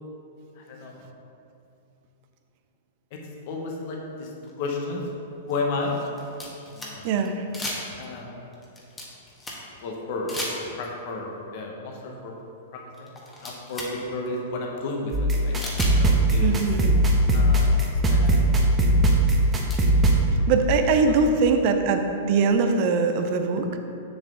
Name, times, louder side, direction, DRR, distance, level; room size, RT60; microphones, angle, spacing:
voice 1, 0.6-1.1 3.1-3.2 3.5-4.3 4.6-5.0 5.5-6.0 6.7-7.1 8.0-8.4 9.8-12.3 12.7-13.1 13.4-15.5 15.9-16.5 17.3-18.4 21.1-21.2, left 3 dB, 55° left, -1 dB, 1.3 m, -32 dB
sound 1, 4.5-4.6 5.5-7.3 7.5-8.2 8.5-9.8 10.3-11.0 12.4-12.5 12.9-14.0 14.3-14.4 15.6-16.0 17.3-17.4 17.7-17.8 18.3-18.4 19.2-19.8, left 1 dB, 15° left, 1.5 m, -35 dB
voice 2, 7.0-7.4 16.4-16.9 20.5-23.8, right 4 dB, 50° right, 6 dB, 0.7 m, -22 dB
sound 2, 15.1-20.2, right 1 dB, 20° right, 1.0 m, -19 dB
6.8 x 6.7 x 3.8 m, 2.7 s
hypercardioid pair, 120°, 0 cm